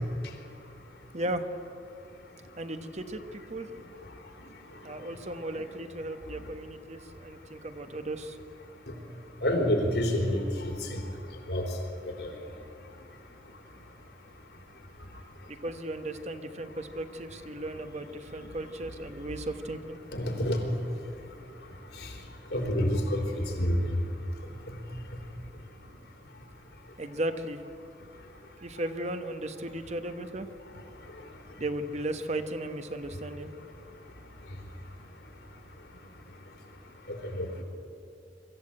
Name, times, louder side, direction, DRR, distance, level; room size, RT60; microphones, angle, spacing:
voice 1, 1.1-1.5 2.6-3.8 4.8-8.4 15.5-20.0 27.0-27.6 28.6-30.5 31.6-33.5, right 1 dB, 40° right, 8 dB, 1.2 m, -36 dB
voice 2, 9.4-11.0 11.5-11.6 12.2-12.3 20.1-20.7 22.0-22.1 22.5-23.8 37.2-37.5, equal, 70° left, 2 dB, 3.9 m, -28 dB
23.5 x 14.0 x 8.9 m, 2.8 s
head